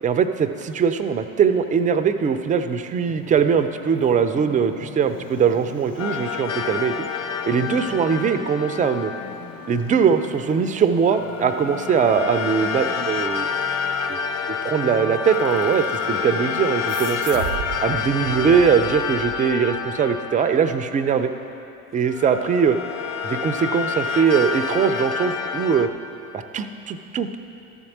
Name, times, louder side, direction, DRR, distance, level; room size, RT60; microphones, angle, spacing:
voice 1, 0.0-7.1 7.5-9.1 9.7-13.5 14.1-14.2 14.6-17.4 17.8-21.3 21.9-22.8 23.2-25.9 26.3-27.4, right 6 dB, 20° right, 8 dB, 0.3 m, -21 dB
Traffic noise roadway noise, 1.6-20.1, left 5 dB, 65° left, 1.0 m, -42 dB
sound 1, 6.0-10.2 11.1-21.5 22.0-25.9, left 6 dB, 35° left, 0.5 m, -28 dB
sound 2, 16.9-19.9, right 9 dB, 85° right, 0.7 m, -34 dB
13.0 x 4.4 x 6.0 m, 2.8 s
hypercardioid pair, 75°, 46 cm